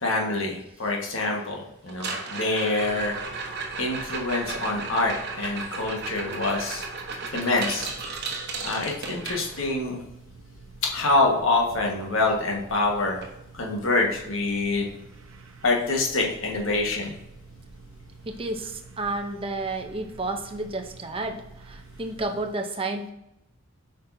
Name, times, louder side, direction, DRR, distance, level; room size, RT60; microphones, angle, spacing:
voice 1, 0.0-3.2 3.8-6.9 7.3-7.9 8.6-10.0 10.8-13.2 13.5-14.9 15.6-17.2, left 2 dB, 65° left, 0 dB, 1.5 m, -26 dB
sound 1, 1.9-9.9 12.1-12.2 12.5-12.8 13.2-13.3 13.9-14.0 15.9-16.0, right 4 dB, 50° right, 1.1 m, -34 dB
sound 2, 2.8-22.5, right 3 dB, 75° right, 0.9 m, -48 dB
voice 2, 18.3-23.1, right 2 dB, 25° right, 4 dB, 0.6 m, -31 dB
8.3 x 5.3 x 2.7 m, 0.82 s
head